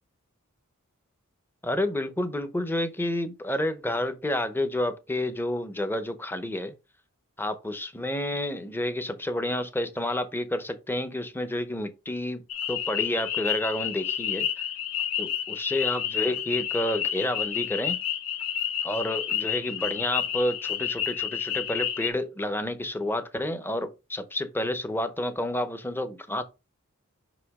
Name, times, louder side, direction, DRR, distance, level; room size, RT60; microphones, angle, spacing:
voice 1, 1.6-6.7 7.4-12.4 12.7-14.7 15.2-18.0 18.8-26.4, left 1 dB, 10° left, 0.7 m, -30 dB
sound 1, 12.5-22.1, left 10 dB, 70° left, 1.1 m, -30 dB
5.7 x 5.0 x 3.5 m
head